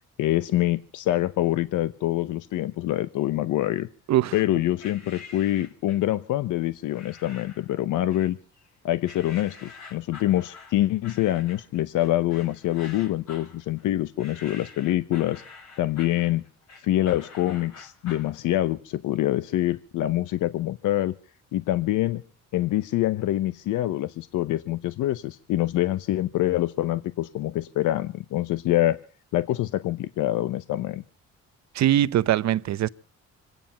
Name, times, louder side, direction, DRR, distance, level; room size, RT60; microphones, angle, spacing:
voice 1, 0.2-3.9 4.3-8.4 8.8-15.4 15.8-16.4 16.8-21.1 21.5-22.2 22.5-29.0 29.3-31.0, left 14 dB, 80° left, 0.7 m, -25 dB
sound 1, 4.8-6.1 6.9-7.7 8.1-8.7 9.0-18.3, left 4 dB, 65° left, 3.3 m, -47 dB
voice 2, 31.7-32.9, right 12 dB, 65° right, 0.7 m, -21 dB
26.5 x 9.2 x 5.6 m
cardioid pair, 90°, 30 cm